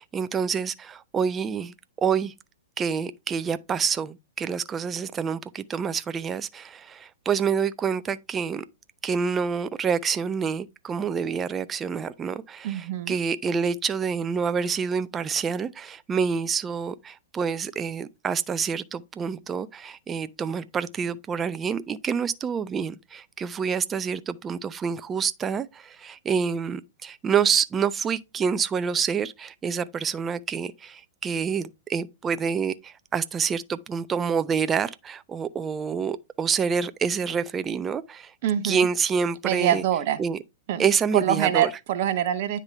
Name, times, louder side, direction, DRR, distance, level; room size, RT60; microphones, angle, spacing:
voice 1, 0.0-2.3 2.8-8.6 9.0-38.3 38.6-39.8 40.2-40.4 40.8-41.7, right 6 dB, 20° right, 0.5 m, -27 dB
voice 2, 12.6-13.2 38.4-38.9 39.4-40.2 40.7-40.9 41.1-42.6, right 10 dB, 55° right, 0.8 m, -24 dB
9.6 x 3.7 x 3.2 m
figure-of-eight pair, 110°, 0 cm